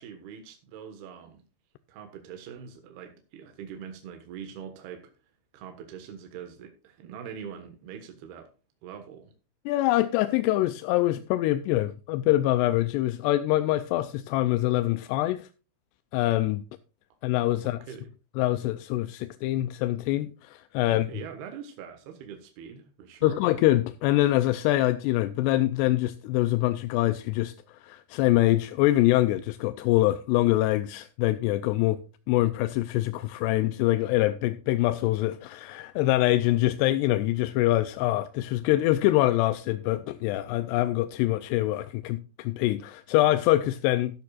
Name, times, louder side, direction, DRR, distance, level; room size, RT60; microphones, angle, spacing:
voice 1, 0.0-1.4 1.9-5.1 5.5-8.5 8.8-9.3 17.6-18.1 20.9-23.4, right 8 dB, 75° right, 3.4 m, -43 dB
voice 2, 9.7-15.5 16.1-16.6 17.2-17.8 18.4-21.1 23.2-27.5 27.8-32.0 32.3-44.1, left 16 dB, 90° left, 2.7 m, -24 dB
13.0 x 12.0 x 2.4 m
omnidirectional pair, 4.7 m